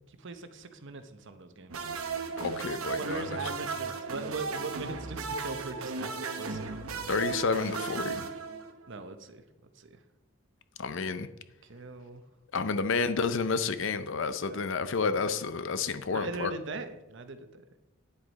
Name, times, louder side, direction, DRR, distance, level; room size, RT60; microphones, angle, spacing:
voice 1, 0.2-1.8 2.9-6.7 8.9-9.4 9.8-10.0 11.7-12.2 14.4-15.0 16.1-17.6, right 3 dB, 60° right, 9 dB, 0.8 m, -40 dB
sound 1, 1.7-9.0, right 4 dB, 85° right, 1.0 m, -36 dB
voice 2, 2.4-3.5 7.1-8.3 10.8-11.3 12.5-16.5, left 4 dB, 60° left, 12 dB, 0.6 m, -30 dB
9.6 x 7.8 x 4.1 m, 0.97 s
head